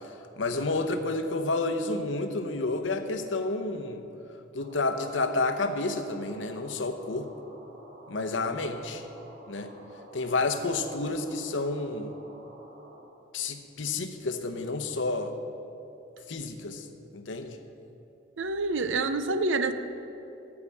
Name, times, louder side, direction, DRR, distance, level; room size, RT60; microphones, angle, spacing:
voice 1, 0.4-4.0 4.5-7.3 8.1-9.0 9.5-9.7 10.1-12.2 13.3-15.3 16.3-16.9 17.1-17.6, left 3 dB, 85° left, 7 dB, 0.8 m, -30 dB
sound 1, 4.6-13.0, right 1 dB, 50° right, 1.7 m, -51 dB
voice 2, 18.4-19.7, right 3 dB, 90° right, 11 dB, 0.6 m, -27 dB
14.0 x 4.9 x 8.4 m, 2.9 s
head